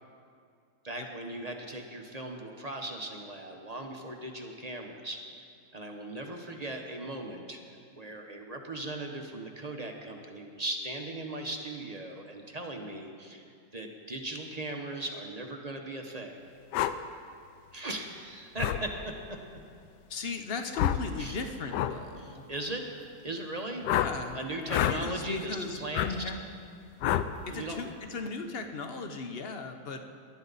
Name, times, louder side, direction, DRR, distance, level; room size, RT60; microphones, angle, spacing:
voice 1, 0.8-5.4 5.7-7.6 8.0-13.4 13.7-16.4 17.7-19.4 21.2-21.4 22.2-22.9 23.2-23.9 24.3-26.3 27.5-27.8, right 1 dB, 30° right, 2 dB, 0.8 m, -38 dB
sound 1, 16.7-16.9 18.6-18.8 20.7-21.1 21.7-21.9 23.8-24.1 24.7-25.0 25.9-26.1 27.0-27.3, left 11 dB, 85° left, 1.2 m, -27 dB
voice 2, 20.1-22.5 23.9-24.4 24.8-26.4 27.5-30.0, left 4 dB, 45° left, 6 dB, 0.8 m, -37 dB
19.0 x 11.5 x 4.1 m, 2.4 s
omnidirectional pair, 1.8 m